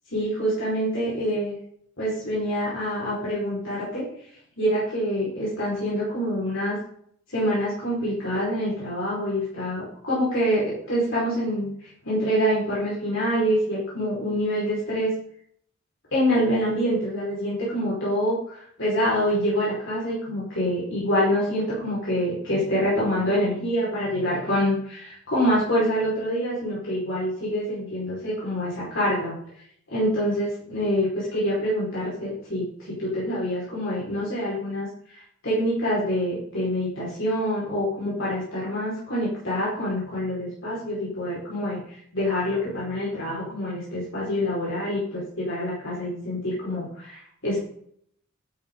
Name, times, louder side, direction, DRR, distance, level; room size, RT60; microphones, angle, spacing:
voice 1, 0.1-1.6 2.0-4.0 4.6-6.8 7.3-15.1 16.1-29.3 29.9-47.6, equal, 65° left, -7 dB, 5.0 m, -26 dB
12.5 x 9.6 x 3.9 m, 0.65 s
head